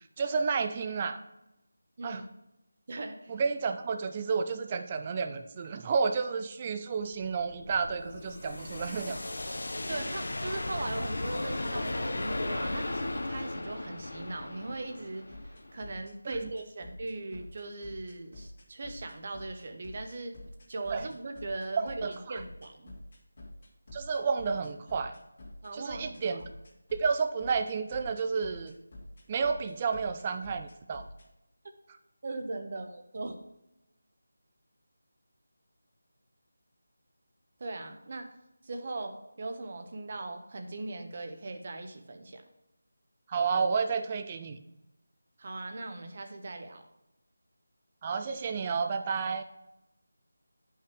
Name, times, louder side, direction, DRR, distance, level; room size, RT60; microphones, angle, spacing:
voice 1, 0.2-1.2 2.0-2.2 3.3-9.2 16.3-16.5 20.9-21.1 21.8-22.4 23.9-25.2 25.7-26.4 26.9-28.8 29.3-31.0 43.3-44.6 48.0-49.4, right 5 dB, 20° right, 7 dB, 0.4 m, -31 dB
voice 2, 2.9-3.3 9.9-20.4 20.7-22.9 25.6-26.4 32.2-33.4 37.6-38.3 38.6-42.4 45.4-46.8, right 2 dB, 40° right, 5 dB, 1.0 m, -39 dB
sound 1, 7.0-15.9, left 2 dB, 70° left, 0.8 m, -36 dB
sound 2, 15.3-31.3, left 1 dB, 45° left, 2.3 m, -48 dB
10.0 x 5.7 x 3.3 m, 0.91 s
figure-of-eight pair, 170°, 0 cm